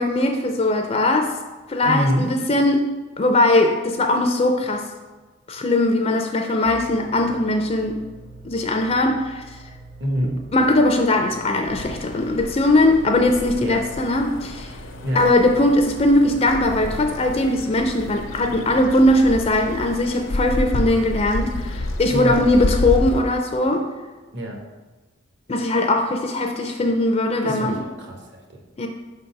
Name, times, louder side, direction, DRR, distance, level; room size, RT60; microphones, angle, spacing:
voice 1, 0.0-1.3 1.7-2.8 3.2-4.9 5.5-8.0 8.4-9.6 10.5-14.8 15.1-23.9 25.5-27.8 28.8-28.9, left 1 dB, 30° left, 4 dB, 0.4 m, -20 dB
voice 2, 1.8-2.2 10.0-10.3 13.6-13.8 15.0-15.2 22.1-22.4 24.3-24.6 27.4-28.6, equal, 60° right, 2 dB, 1.2 m, -25 dB
sound 1, 6.6-19.7, right 2 dB, 25° right, 0.6 m, -44 dB
sound 2, 11.6-23.2, left 1 dB, 70° left, 0.6 m, -30 dB
5.4 x 4.0 x 5.8 m, 1.2 s
head